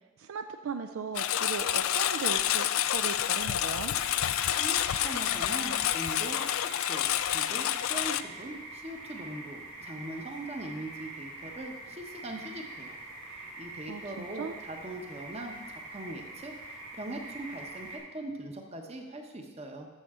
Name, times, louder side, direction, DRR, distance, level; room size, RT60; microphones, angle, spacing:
voice 1, 0.2-3.9 13.9-14.5, right 5 dB, 70° right, 8 dB, 0.4 m, -37 dB
Engine, 1.1-8.2, left 11 dB, 70° left, 0.4 m, -28 dB
sound 1, 3.9-18.0, right 2 dB, 85° right, 2.9 m, -44 dB
voice 2, 4.6-13.0 13.3-19.9, right 1 dB, 30° right, 3 dB, 1.0 m, -41 dB
13.0 x 6.8 x 3.7 m, 1.3 s
head